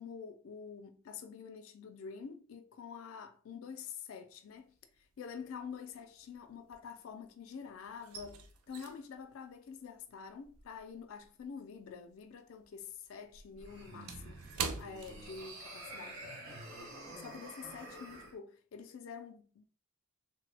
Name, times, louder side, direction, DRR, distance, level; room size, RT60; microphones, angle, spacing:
voice 1, 0.0-16.2 17.2-19.7, left 6 dB, 70° left, 0.4 m, -47 dB
sound 1, 4.6-5.1 5.4-7.4 7.7-12.3 12.6-15.9 16.2-16.4 16.9-17.2, right 5 dB, 90° right, 0.4 m, -45 dB
sound 2, 13.6-18.3, right 1 dB, 70° right, 1.0 m, -48 dB
3.0 x 2.1 x 3.3 m
head